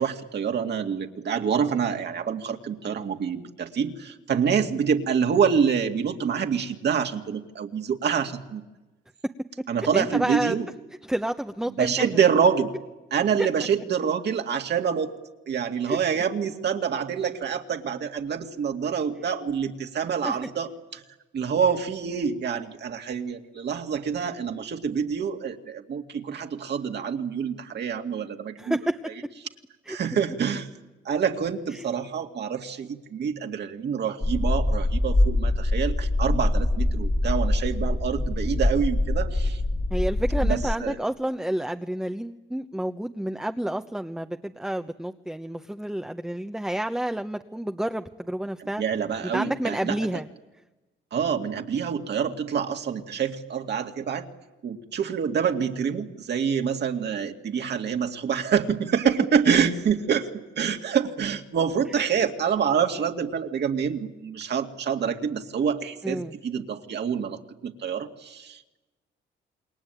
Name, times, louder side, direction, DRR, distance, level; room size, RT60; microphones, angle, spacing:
voice 1, 0.0-8.6 9.7-10.6 11.8-12.7 13.1-15.1 15.5-21.0 21.3-28.8 29.9-30.7 31.0-39.6 40.4-41.0 48.6-50.0 51.1-54.3 54.6-60.3 60.6-68.8, right 7 dB, 60° right, 5 dB, 2.4 m, -26 dB
voice 2, 9.9-10.6 11.0-12.2 13.4-13.5 15.9-16.2 20.2-20.4 28.6-29.1 29.9-30.0 31.7-31.8 39.9-48.8 49.2-50.3 61.8-61.9 66.0-66.3, right 1 dB, 5° right, 6 dB, 1.0 m, -30 dB
sound 1, 34.2-40.7, left 1 dB, 20° left, 1.6 m, -24 dB
28.0 x 21.5 x 9.1 m, 1.1 s
cardioid pair, 90°, 20 cm